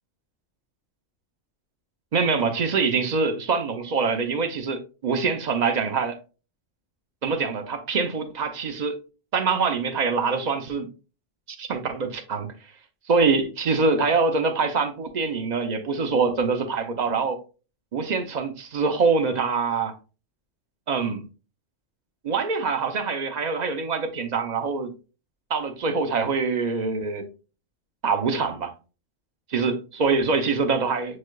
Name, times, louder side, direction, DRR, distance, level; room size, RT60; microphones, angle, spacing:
voice 1, 2.1-6.2 7.2-9.0 9.3-10.9 11.6-12.5 13.1-17.4 17.9-20.0 20.9-21.2 22.2-24.9 25.5-27.3 28.0-28.7 29.5-31.2, right 4 dB, 45° right, 0.6 m, -24 dB
7.2 x 3.2 x 2.2 m
omnidirectional pair, 1.3 m